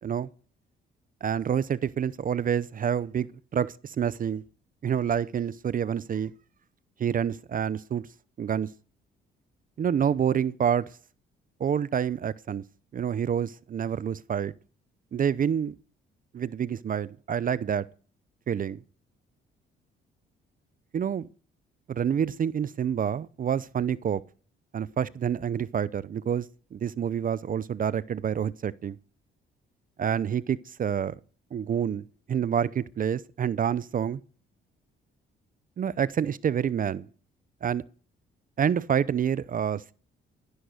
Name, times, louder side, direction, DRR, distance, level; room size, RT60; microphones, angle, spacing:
voice 1, 1.2-4.4 4.8-6.3 7.0-8.0 8.4-8.7 9.8-11.0 11.6-12.6 12.9-14.5 15.1-15.7 16.3-17.9 18.5-18.8 20.9-21.3 21.9-24.2 24.7-29.0 30.0-31.1 31.5-34.2 35.8-37.1 37.6-37.8 38.6-39.9, right 8 dB, 45° right, 0.6 m, -28 dB
12.5 x 11.5 x 6.5 m
cardioid pair, 90°, 20 cm